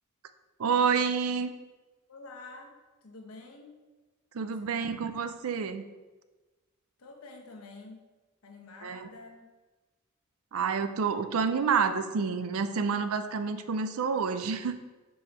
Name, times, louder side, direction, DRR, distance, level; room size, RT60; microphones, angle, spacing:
voice 1, 0.6-1.5 4.3-5.8 8.8-9.1 10.5-14.8, right 6 dB, 80° right, 11 dB, 0.4 m, -28 dB
voice 2, 2.1-3.8 4.4-5.0 7.0-8.1 8.4-9.5, left 3 dB, 90° left, 2 dB, 1.0 m, -49 dB
5.0 x 4.7 x 4.1 m, 1.2 s
head